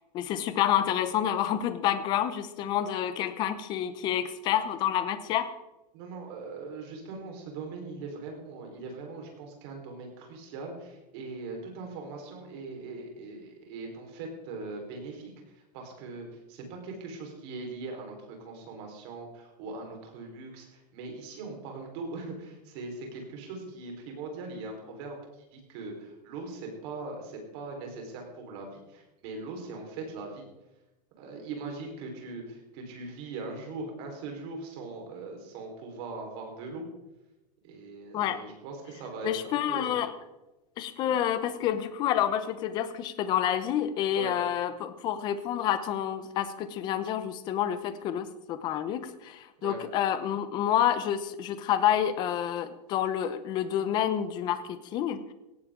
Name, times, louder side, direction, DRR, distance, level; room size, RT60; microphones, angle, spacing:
voice 1, 0.1-5.5 38.1-38.4 39.2-40.1 40.8-55.2, left 10 dB, 20° left, 12 dB, 0.8 m, -28 dB
voice 2, 5.9-30.5 31.2-36.8 37.6-40.0 41.0-41.2 44.1-44.4 49.6-49.8, right 3 dB, 40° right, 2 dB, 4.3 m, -40 dB
17.5 x 15.5 x 3.8 m, 0.99 s
supercardioid pair, 180°, 21 cm